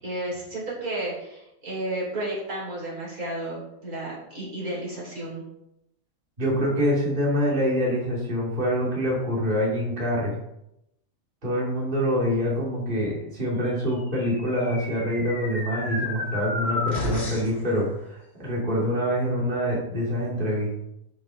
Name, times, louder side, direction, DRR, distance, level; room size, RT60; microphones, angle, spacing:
voice 1, 0.0-5.4, right 1 dB, 85° right, -6 dB, 4.7 m, -32 dB
voice 2, 6.4-10.3 11.4-20.8, equal, 35° right, -4 dB, 2.5 m, -25 dB
sound 1, 14.0-17.6, left 2 dB, 45° left, 2.8 m, -32 dB
12.0 x 6.1 x 3.7 m, 0.82 s
omnidirectional pair, 1.5 m